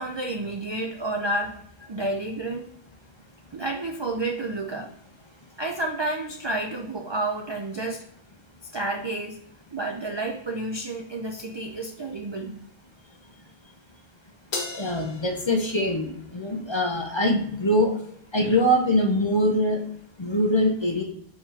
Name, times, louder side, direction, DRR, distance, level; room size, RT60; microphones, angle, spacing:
voice 1, 0.0-1.6 1.9-2.7 3.5-4.9 5.6-8.0 8.7-9.4 9.7-12.6 18.4-18.6, right 2 dB, 50° right, 3 dB, 0.3 m, -30 dB
Crash cymbal, 14.5-17.1, left 3 dB, 90° left, 1.2 m, -37 dB
voice 2, 14.7-17.9 18.3-19.8 20.2-21.0, equal, 30° left, 2 dB, 0.6 m, -23 dB
4.8 x 3.6 x 2.7 m, 0.68 s
omnidirectional pair, 1.0 m